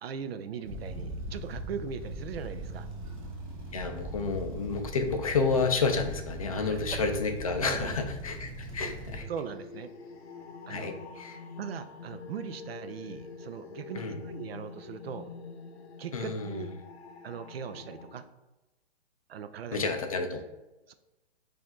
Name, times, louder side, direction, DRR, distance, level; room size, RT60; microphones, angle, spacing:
voice 1, 0.0-2.9 6.6-6.8 7.6-7.9 9.3-9.9 10.7-11.1 11.6-15.3 16.0-16.7 17.2-18.3 19.3-19.8 20.9-21.0, right 7 dB, 65° right, 10 dB, 0.5 m, -39 dB
sound 1, 0.6-9.2, right 1 dB, 35° right, 0.8 m, -40 dB
voice 2, 3.7-9.3 10.7-11.4 13.9-14.2 16.1-16.7 19.7-20.4, left 4 dB, 35° left, 6 dB, 0.4 m, -30 dB
sound 2, 8.3-18.2, left 4 dB, 70° left, 0.7 m, -46 dB
4.7 x 2.6 x 3.7 m, 1.0 s
hypercardioid pair, 165°, 33 cm